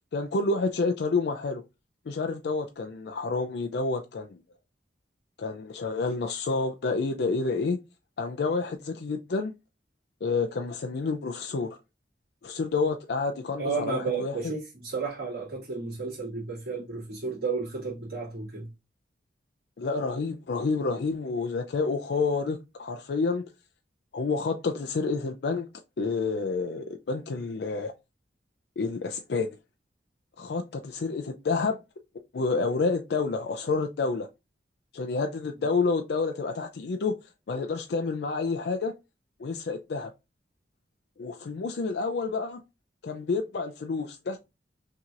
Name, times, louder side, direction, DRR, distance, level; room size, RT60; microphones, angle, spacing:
voice 1, 0.1-1.6 2.1-4.4 5.4-7.8 8.2-9.5 10.2-11.8 12.4-14.4 19.8-23.4 24.1-25.7 26.0-27.9 28.8-29.5 30.4-31.8 32.3-34.3 34.9-37.1 37.5-38.9 39.4-40.1 41.2-42.6 43.0-44.4, left 4 dB, 70° left, 0.4 m, -29 dB
voice 2, 13.6-18.7, right 4 dB, 65° right, 2.3 m, -32 dB
5.8 x 2.8 x 2.4 m
head